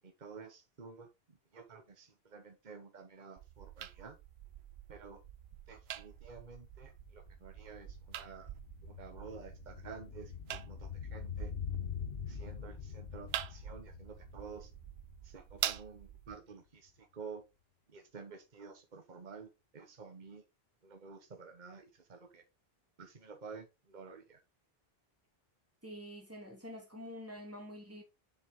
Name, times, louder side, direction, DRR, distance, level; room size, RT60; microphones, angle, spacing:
voice 1, 0.0-1.1 1.5-4.2 4.9-5.2 5.7-8.5 8.8-11.5 12.3-14.7 15.2-17.4 17.9-20.4 20.8-22.4 23.0-24.4, right 5 dB, 50° right, 1.4 m, -51 dB
sound 1, 3.4-16.4, right 11 dB, 85° right, 0.9 m, -46 dB
sound 2, 5.2-5.3 5.5-15.9 16.2-16.3, left 8 dB, 75° left, 1.3 m, -45 dB
voice 2, 25.8-28.0, equal, 15° right, 3.0 m, -47 dB
7.0 x 6.4 x 3.7 m
omnidirectional pair, 1.0 m